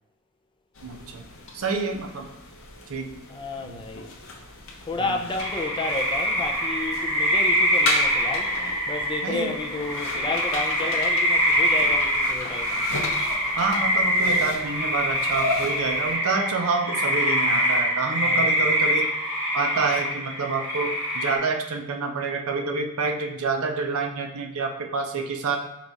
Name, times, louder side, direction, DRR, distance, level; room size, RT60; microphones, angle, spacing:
sound 1, 0.8-16.1, left 2 dB, 60° left, 0.7 m, -35 dB
voice 1, 0.8-1.3 1.5-2.3 2.9-3.1 3.7-3.8 5.0-5.2 9.2-9.5 13.6-19.1 19.5-25.6, right 4 dB, 65° right, 3 dB, 0.5 m, -28 dB
voice 2, 3.3-4.1 4.9-8.5 8.9-12.8 18.2-18.5, left 3 dB, 20° left, 4 dB, 0.3 m, -32 dB
sound 2, 5.4-21.4, equal, 10° right, 1.3 m, -24 dB
4.8 x 2.3 x 3.9 m, 0.93 s
head